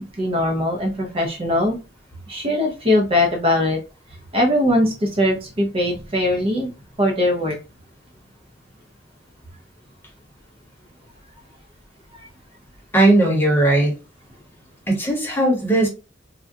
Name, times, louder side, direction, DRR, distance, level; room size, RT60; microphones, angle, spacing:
voice 1, 0.2-1.8 2.3-3.8 4.3-6.7 7.0-7.6, left 1 dB, 30° right, 1 dB, 0.6 m, -20 dB
voice 2, 12.9-13.9 14.9-15.9, right 1 dB, 10° left, -1 dB, 1.0 m, -17 dB
3.6 x 2.3 x 2.6 m, 0.31 s
head